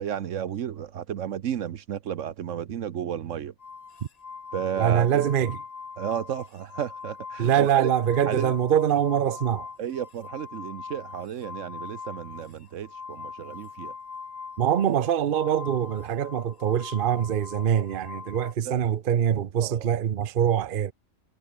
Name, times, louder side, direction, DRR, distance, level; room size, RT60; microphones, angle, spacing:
voice 1, 0.0-3.5 4.5-5.3 6.0-7.9 8.3-8.5 9.8-13.9 18.6-19.0 19.6-19.9, right 9 dB, 70° right, 1.2 m, -32 dB
sound 1, 3.6-18.5, left 5 dB, 35° left, 1.0 m, -42 dB
voice 2, 4.8-5.5 7.4-9.7 14.6-20.9, right 9 dB, 50° right, 0.8 m, -24 dB
omnidirectional pair, 1.4 m